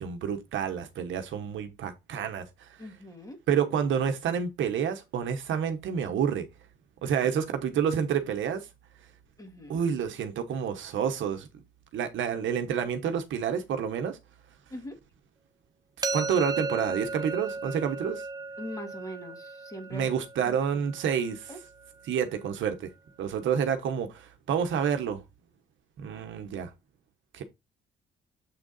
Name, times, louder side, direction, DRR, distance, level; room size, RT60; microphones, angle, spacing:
voice 1, 0.0-2.8 3.5-6.5 7.0-8.7 9.7-11.5 11.9-14.2 16.1-18.2 19.9-21.5 22.1-22.9 23.2-25.2 26.0-26.7 27.3-27.4, right 7 dB, 75° right, 1.1 m, -29 dB
voice 2, 2.8-3.4 9.4-9.8 14.7-15.0 18.6-20.1 20.4-20.9 21.5-21.6, equal, 15° left, 2.1 m, -41 dB
sound 1, 16.0-21.9, right 3 dB, 20° right, 0.6 m, -36 dB
7.6 x 3.6 x 4.0 m
cardioid pair, 90°, 20 cm